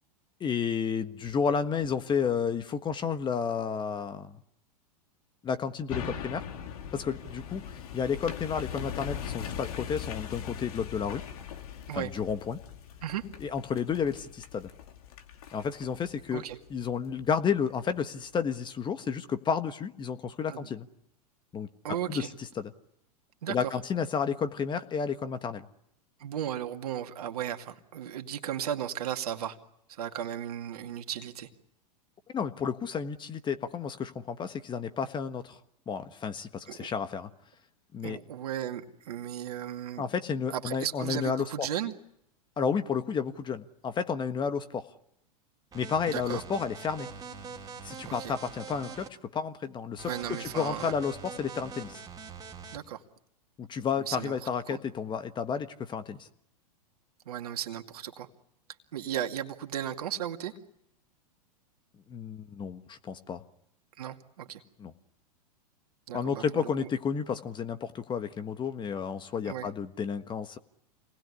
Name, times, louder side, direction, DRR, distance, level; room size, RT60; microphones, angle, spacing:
voice 1, 0.4-4.3 5.4-6.5 6.9-11.2 11.9-12.6 13.4-14.7 15.5-16.4 16.7-20.9 21.5-21.7 22.1-22.2 22.6-22.7 23.5-25.7 32.3-35.6 35.9-37.3 37.9-38.2 40.0-41.4 42.6-44.8 45.7-47.1 47.8-49.1 49.3-50.1 50.4-52.0 53.6-56.3 62.1-63.4 64.8-64.9 66.1-70.6, left 6 dB, 25° left, 10 dB, 1.5 m, -31 dB
sound 1, 5.9-17.3 17.8-17.9, left 8 dB, 65° left, 2.5 m, -41 dB
voice 2, 21.8-22.3 23.4-23.8 26.2-29.6 29.9-31.5 36.7-36.9 38.0-40.1 40.5-41.9 46.0-46.4 48.1-48.3 50.0-50.9 52.7-53.0 53.9-54.8 57.3-58.3 58.9-60.5 64.0-64.6 66.1-66.9 69.4-69.7, right 10 dB, 70° right, 5 dB, 2.3 m, -35 dB
sound 2, 45.7-49.1 50.0-52.8, right 5 dB, 20° right, 3.1 m, -44 dB
27.5 x 19.5 x 9.9 m, 0.79 s
hypercardioid pair, 105°, 20 cm